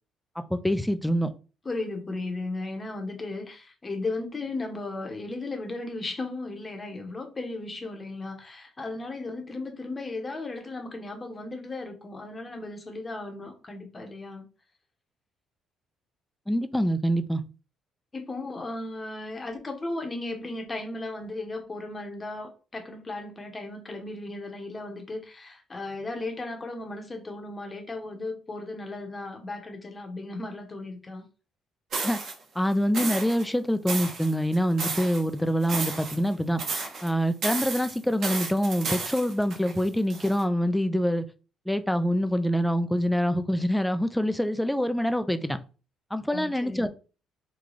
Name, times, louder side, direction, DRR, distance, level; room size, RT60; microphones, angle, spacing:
voice 1, 0.4-1.3 16.5-17.4 32.0-32.2 32.6-36.6 37.0-41.3 41.7-45.6 46.1-46.9, equal, 5° left, 0.3 m, -25 dB
voice 2, 1.6-14.4 18.1-31.2 46.3-46.9, left 2 dB, 20° left, 0.8 m, -36 dB
sound 1, 31.9-32.3 32.9-33.4 33.9-35.2 35.6-36.3 36.6-37.1 37.4-40.4, right 4 dB, 55° right, 0.9 m, -32 dB
3.8 x 2.3 x 3.1 m
cardioid pair, 125°, 0 cm